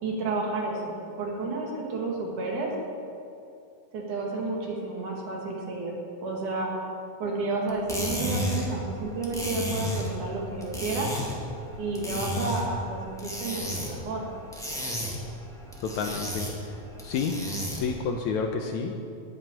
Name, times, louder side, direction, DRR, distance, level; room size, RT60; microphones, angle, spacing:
voice 1, 0.0-2.7 3.9-5.9 6.2-6.7 7.2-11.1 11.8-14.3, right 3 dB, 65° right, -1 dB, 3.3 m, -31 dB
sound 1, 7.7-18.0, equal, ahead, 1.2 m, -33 dB
voice 2, 15.8-16.7 17.0-17.4 17.8-18.9, left 5 dB, 75° left, 3 dB, 1.9 m, -30 dB
10.5 x 7.8 x 9.6 m, 2.6 s
omnidirectional pair, 4.0 m